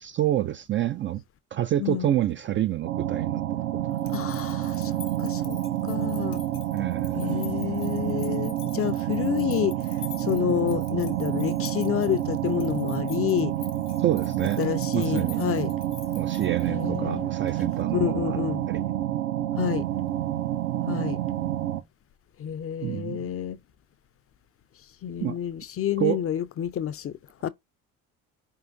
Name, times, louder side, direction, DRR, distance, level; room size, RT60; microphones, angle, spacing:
voice 1, 0.0-1.2 1.5-3.4 6.7-7.5 14.0-14.6 14.9-15.4 16.1-18.4 18.7-19.0 22.8-23.3 25.2-25.4 26.0-26.2, right 12 dB, 30° right, 0.4 m, -28 dB
voice 2, 1.8-2.1 4.1-6.4 7.1-13.5 14.6-15.7 16.7-17.3 17.9-18.6 19.6-19.9 20.9-21.2 22.4-23.6 25.0-27.5, left 10 dB, 30° left, 0.5 m, -29 dB
sound 1, 2.8-21.8, right 13 dB, 65° right, 0.8 m, -28 dB
sound 2, 3.9-17.0, left 10 dB, 90° left, 0.7 m, -47 dB
4.8 x 3.5 x 2.6 m
figure-of-eight pair, 50°, 44 cm